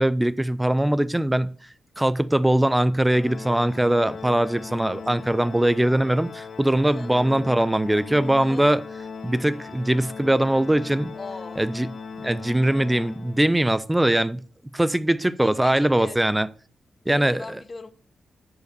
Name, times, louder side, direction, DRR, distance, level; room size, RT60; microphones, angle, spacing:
voice 1, 0.0-1.5 2.0-8.8 9.2-11.1 11.6-11.9 12.2-14.4 14.7-16.5 17.1-17.4, right 1 dB, 10° right, 0.4 m, -21 dB
Organ, 3.1-13.8, left 5 dB, 60° left, 1.1 m, -39 dB
voice 2, 11.1-11.6 15.4-16.2 17.1-17.9, left 3 dB, 30° left, 0.7 m, -39 dB
6.7 x 5.0 x 6.6 m
wide cardioid pair, 130°, 0 cm